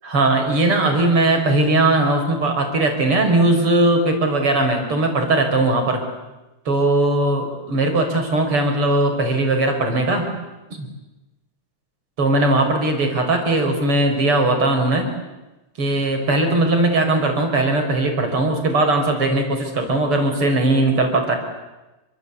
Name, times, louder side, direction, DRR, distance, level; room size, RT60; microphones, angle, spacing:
voice 1, 0.0-6.0 6.7-10.3 10.7-10.9 12.2-15.1 15.8-21.4, right 2 dB, 45° right, 5 dB, 5.4 m, -19 dB
28.5 x 25.0 x 8.3 m, 1.1 s
omnidirectional pair, 3.5 m